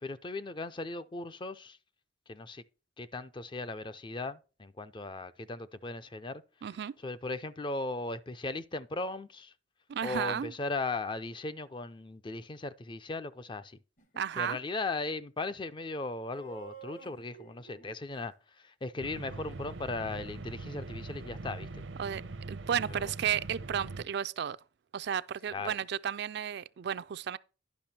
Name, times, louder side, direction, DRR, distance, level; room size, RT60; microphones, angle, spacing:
voice 1, 0.0-1.8 2.3-2.6 3.0-6.4 7.0-9.5 10.0-13.8 14.4-21.8 22.9-23.1 25.5-25.7, left 3 dB, 25° left, 0.4 m, -37 dB
voice 2, 6.6-6.9 9.9-10.5 14.2-14.6 22.0-22.2 22.5-24.6 24.9-27.4, right 8 dB, 60° right, 0.4 m, -33 dB
sound 1, 14.0-14.3 16.4-17.9, right 3 dB, 45° left, 1.1 m, -49 dB
sound 2, 19.0-24.1, right 3 dB, 85° right, 0.7 m, -42 dB
10.5 x 5.8 x 4.2 m
head